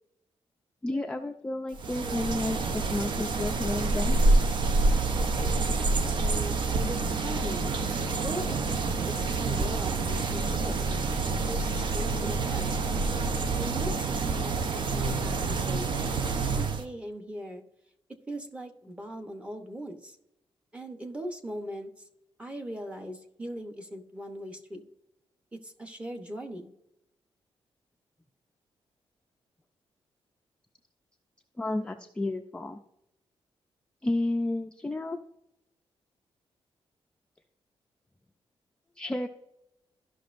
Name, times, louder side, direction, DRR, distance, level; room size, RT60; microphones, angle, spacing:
voice 1, 0.8-4.2 5.1-5.3 31.6-32.8 34.0-35.2 39.0-39.3, left 2 dB, 10° left, 4 dB, 0.4 m, -31 dB
sound 1, 1.7-16.8, right 3 dB, 55° right, 0.8 m, -27 dB
voice 2, 6.1-7.7 8.2-10.9 11.4-12.7 13.6-16.0 16.5-17.6 18.3-20.2 20.7-21.9 22.4-24.8 25.5-26.7, equal, 15° right, 5 dB, 0.9 m, -39 dB
13.5 x 5.9 x 2.5 m, 0.82 s
wide cardioid pair, 175°, 10 cm